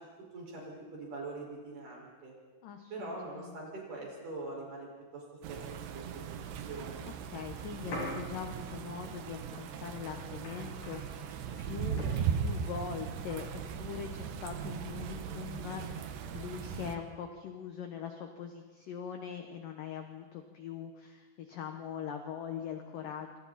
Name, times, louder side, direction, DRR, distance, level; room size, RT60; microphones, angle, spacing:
voice 1, 0.3-2.3 2.9-7.0, right 2 dB, 40° right, -2 dB, 6.6 m, -43 dB
voice 2, 2.6-3.5 7.3-23.4, left 7 dB, 80° left, 5 dB, 1.9 m, -42 dB
sound 1, 5.4-17.0, right 7 dB, 70° right, 2.7 m, -38 dB
sound 2, 7.9-13.9, left 1 dB, 50° left, 8.8 m, -47 dB
27.0 x 25.5 x 4.3 m, 1.3 s
omnidirectional pair, 5.8 m